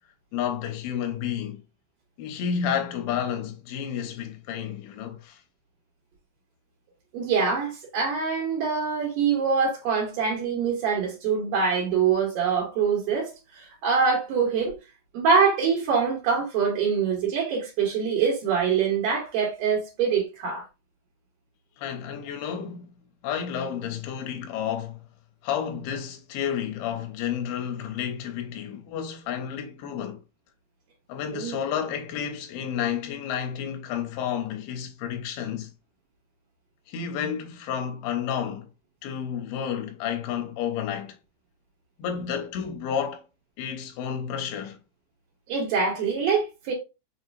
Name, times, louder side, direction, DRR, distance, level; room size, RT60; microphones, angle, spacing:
voice 1, 0.3-1.6 2.2-5.4 21.8-22.9 23.2-25.0 25.4-30.2 31.1-35.7 36.9-38.7 39.0-41.2 42.0-43.2 43.6-44.8, left 8 dB, 80° left, 2.6 m, -31 dB
voice 2, 7.1-14.8 15.1-20.6 31.3-31.5 45.5-46.7, right 6 dB, 65° right, 2.7 m, -24 dB
6.1 x 2.8 x 2.6 m
omnidirectional pair, 4.6 m